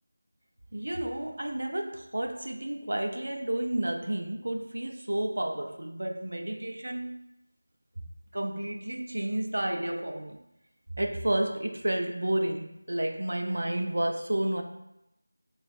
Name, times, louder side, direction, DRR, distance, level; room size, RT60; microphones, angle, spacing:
voice 1, 0.7-7.2 8.3-10.4 11.0-14.6, right 1 dB, 70° right, 4 dB, 0.4 m, -31 dB
3.0 x 2.2 x 4.1 m, 0.88 s
figure-of-eight pair, 175°, 0 cm